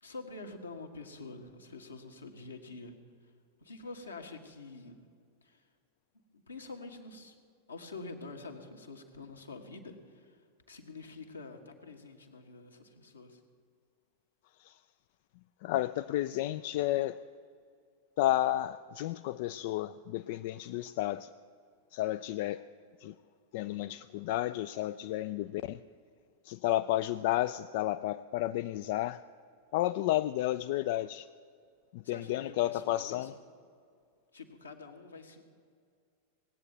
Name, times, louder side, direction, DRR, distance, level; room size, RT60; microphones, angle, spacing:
voice 1, 0.0-2.9 3.6-5.0 5.4-5.6 6.3-7.3 7.7-10.4 10.7-13.4 32.0-33.3 34.3-35.4, left 3 dB, 80° left, 1.5 m, -47 dB
voice 2, 15.6-17.2 18.2-21.3 21.9-22.6 23.0-23.1 23.5-25.8 26.4-29.2 29.7-31.3 31.9-33.3, left 14 dB, 50° left, 0.3 m, -32 dB
18.5 x 8.6 x 9.1 m
figure-of-eight pair, 90°, 0 cm